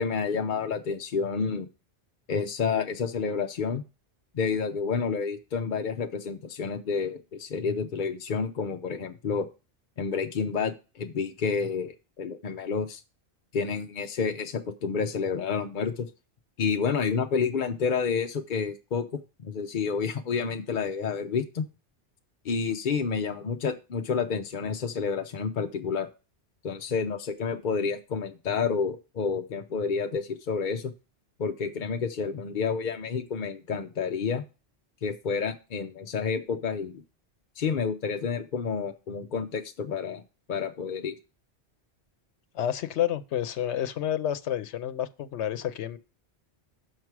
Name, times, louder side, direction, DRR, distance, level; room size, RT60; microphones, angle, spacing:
voice 1, 0.0-1.7 2.3-3.8 4.3-9.5 10.0-13.0 13.5-16.1 16.6-19.1 19.4-21.7 22.4-26.1 26.6-30.9 31.4-34.4 35.0-37.0 37.6-40.2 40.5-41.2, left 5 dB, 50° left, 0.7 m, -29 dB
voice 2, 42.5-46.0, left 10 dB, 85° left, 1.0 m, -29 dB
6.5 x 6.0 x 4.6 m
omnidirectional pair, 1.1 m